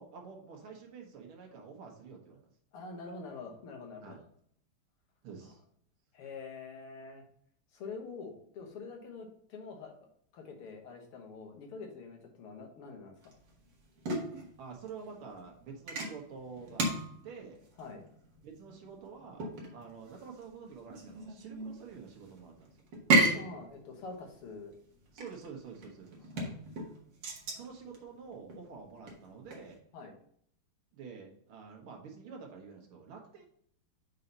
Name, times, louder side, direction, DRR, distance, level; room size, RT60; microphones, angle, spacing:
voice 1, 0.0-2.4 4.0-4.2 5.2-5.6 14.6-16.9 17.2-17.7 18.4-22.7 25.1-26.3 27.5-29.8 30.9-33.5, right 5 dB, 75° right, 0 dB, 2.1 m, -48 dB
voice 2, 2.7-4.2 6.1-7.2 7.7-9.9 10.3-13.3 17.8-18.1 23.3-24.7 26.3-26.5 29.9-30.1, left 4 dB, 80° left, 2 dB, 2.2 m, -45 dB
sound 1, 13.2-29.8, right 2 dB, 55° right, 2.0 m, -35 dB
5.7 x 4.0 x 5.3 m, 0.66 s
omnidirectional pair, 2.4 m